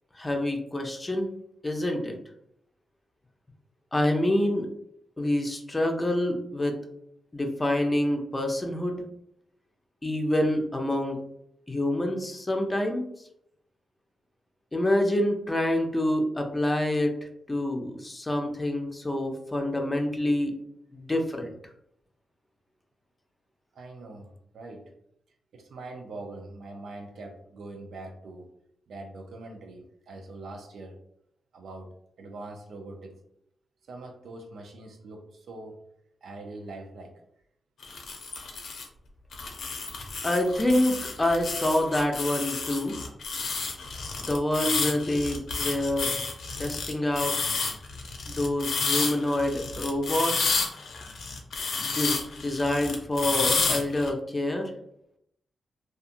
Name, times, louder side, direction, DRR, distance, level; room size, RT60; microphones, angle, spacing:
voice 1, 0.2-1.3 1.6-2.2 3.9-4.7 5.2-6.8 7.3-9.0 10.0-11.2 11.7-13.1 14.7-17.1 17.5-20.5 20.9-21.5 40.2-43.0 44.2-46.1 46.6-47.3 48.3-50.6 51.8-54.7, left 1 dB, 25° left, 3 dB, 0.6 m, -27 dB
voice 2, 23.7-24.9 25.5-28.5 28.9-31.0 31.5-33.2 33.9-35.8 36.2-37.2, right 2 dB, 75° right, 3 dB, 0.5 m, -43 dB
sound 1, 37.8-38.8 39.3-54.1, left 4 dB, 75° left, 0.5 m, -30 dB
2.7 x 2.4 x 2.5 m, 0.73 s
cardioid pair, 55°, 0 cm